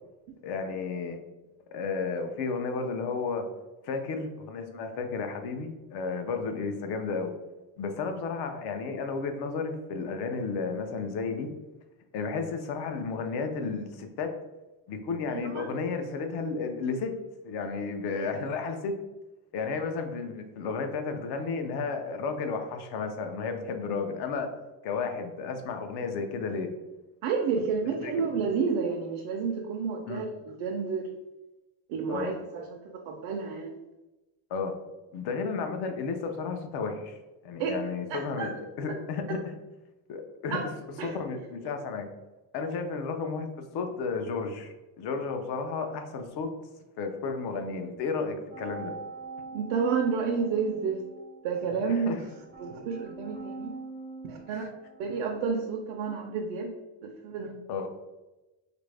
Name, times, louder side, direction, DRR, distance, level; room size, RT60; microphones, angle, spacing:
voice 1, 0.4-1.2 1.7-3.5 3.8-7.3 7.8-11.5 12.1-14.3 14.9-17.1 17.4-19.0 19.5-24.5 24.8-26.7 28.0-28.1 30.1-30.2 32.1-32.3 34.5-34.7 35.1-39.4 40.1-40.6 41.1-42.1 42.5-46.5 47.0-48.9 51.9-52.2 54.5-54.7 57.7-57.9, left 4 dB, 55° left, 6 dB, 0.5 m, -33 dB
voice 2, 15.3-15.7 18.1-18.3 27.2-31.1 31.9-33.7 37.6-37.7 38.1-38.5 38.9-39.0 40.5-40.6 41.0-41.2 49.5-51.0 51.4-52.2 52.6-53.7 54.3-54.7 55.0-56.7 57.0-57.5, right 5 dB, 75° right, 1 dB, 0.6 m, -30 dB
sound 1, 48.5-55.4, right 3 dB, 25° right, 0.3 m, -44 dB
3.3 x 2.5 x 3.2 m, 1.1 s
cardioid pair, 180°, 48 cm